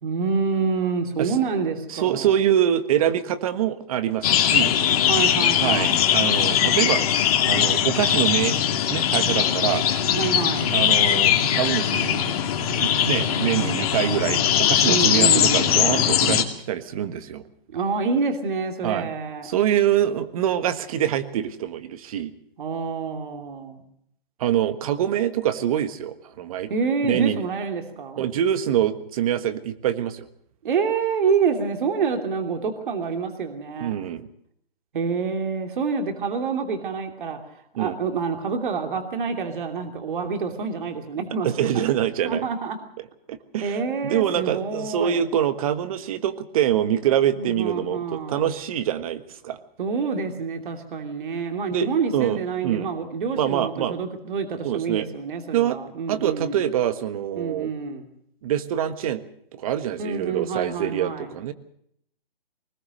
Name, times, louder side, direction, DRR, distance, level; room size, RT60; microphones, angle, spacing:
voice 1, 0.0-2.3 5.1-6.1 10.1-10.8 14.8-15.7 17.7-19.5 22.6-23.8 26.7-28.3 30.6-34.0 34.9-37.4 37.8-41.5 41.7-41.8 42.2-42.8 43.6-45.2 47.4-48.4 49.8-56.6 57.3-58.0 60.0-61.3, right 5 dB, 55° right, 4 dB, 2.9 m, -27 dB
voice 2, 1.9-4.8 5.6-7.0 7.4-8.6 8.9-9.8 10.7-12.2 12.8-17.4 18.8-19.1 19.4-22.3 24.4-26.7 27.0-27.4 28.2-30.3 33.8-34.3 37.8-38.0 41.4-42.5 43.3-49.6 51.7-52.9 53.3-54.0 54.6-55.1 55.5-55.8 56.1-57.7 58.4-59.2 59.5-61.5, right 10 dB, 35° right, 12 dB, 1.4 m, -25 dB
sound 1, 4.2-16.4, left 9 dB, 40° left, 2.4 m, -20 dB
21.0 x 20.0 x 6.6 m, 0.69 s
hypercardioid pair, 150°, 29 cm